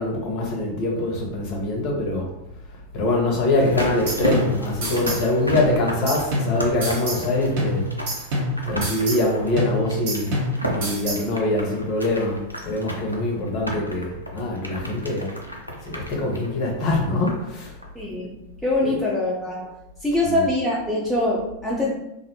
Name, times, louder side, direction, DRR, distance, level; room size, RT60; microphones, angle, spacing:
voice 1, 0.0-2.3 2.9-7.8 8.7-10.3 10.7-15.3 15.8-17.7 18.8-19.0 20.2-20.5, left 2 dB, 40° left, 0 dB, 0.6 m, -24 dB
sound 1, 3.5-17.5 17.8-17.9, equal, 90° left, 0.4 m, -33 dB
sound 2, 3.6-5.3 5.6-7.3 7.6-9.3 9.6-11.3, equal, 50° right, 0.7 m, -27 dB
voice 2, 18.0-19.8 20.0-21.9, left 1 dB, ahead, -6 dB, 0.4 m, -24 dB
2.5 x 2.0 x 2.8 m, 0.89 s
figure-of-eight pair, 90°, 0 cm